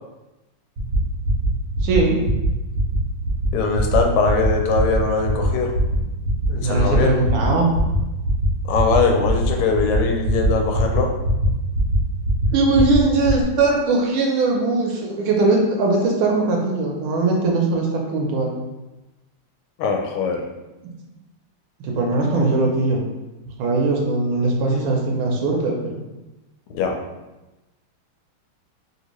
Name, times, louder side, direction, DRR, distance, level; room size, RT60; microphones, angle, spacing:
sound 1, 0.8-1.0 1.2-1.5 1.7-2.0 2.2-2.5 2.7-3.0 3.2-3.5 3.7-4.0 4.2-4.5 4.7-5.0 5.2-5.5 5.7-6.0 6.2-6.5 6.7-7.0 7.2-7.5 7.7-8.0 8.2-8.5 8.7-9.0 9.2-9.5 9.7-10.0 10.2-10.5 10.7-11.0 11.2-11.5 11.7-12.0 12.2-12.5 12.7-13.0 13.2-13.4, right 1 dB, 60° right, 0.8 m, -22 dB
voice 1, 1.8-2.2 6.6-7.7 12.5-18.6 21.8-23.0 23.6-26.0, right 3 dB, 75° right, 0 dB, 1.3 m, -20 dB
voice 2, 3.5-5.7 6.5-7.1 8.7-11.1 19.8-20.4 26.7-26.9, left 4 dB, 90° left, 2 dB, 1.5 m, -21 dB
3.4 x 2.8 x 2.9 m, 1.0 s
omnidirectional pair, 2.4 m